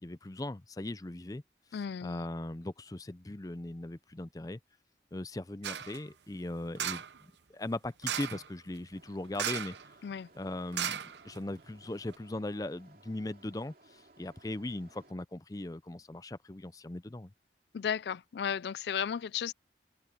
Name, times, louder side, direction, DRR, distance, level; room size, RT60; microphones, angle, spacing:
voice 1, 0.0-1.4 2.0-4.6 5.1-9.8 10.3-17.3, left 1 dB, 20° left, 0.5 m, -39 dB
voice 2, 1.7-2.2 10.0-10.3 17.7-19.5, left 7 dB, 75° left, 0.4 m, -34 dB
sound 1, 5.6-6.0 6.8-7.2 8.0-8.5 9.3-9.9 10.1-10.2 10.7-11.6 12.1-12.2, right 9 dB, 85° right, 0.8 m, -35 dB
sound 2, 8.9-15.1, right 2 dB, 55° right, 2.9 m, -61 dB
head